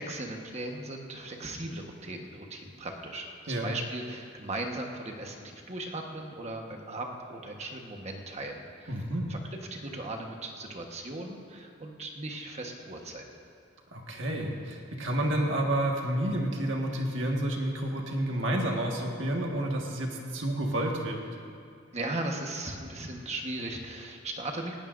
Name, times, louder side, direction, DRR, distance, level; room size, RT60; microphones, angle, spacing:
voice 1, 0.0-9.0 9.3-9.4 9.7-13.2 21.9-24.8, right 2 dB, 35° right, 2 dB, 1.2 m, -37 dB
voice 2, 8.9-9.3 13.9-21.2, right 1 dB, 65° right, 0 dB, 1.6 m, -30 dB
19.0 x 17.0 x 2.6 m, 2.5 s
head